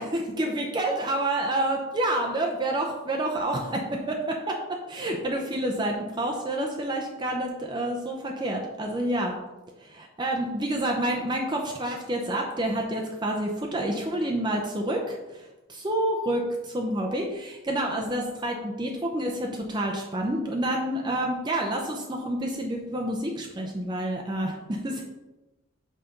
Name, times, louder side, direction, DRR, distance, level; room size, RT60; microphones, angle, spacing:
voice 1, 0.4-4.6 4.9-9.3 9.8-25.0, right 1 dB, 20° right, 1 dB, 0.6 m, -28 dB
5.7 x 4.1 x 5.1 m, 1.1 s
head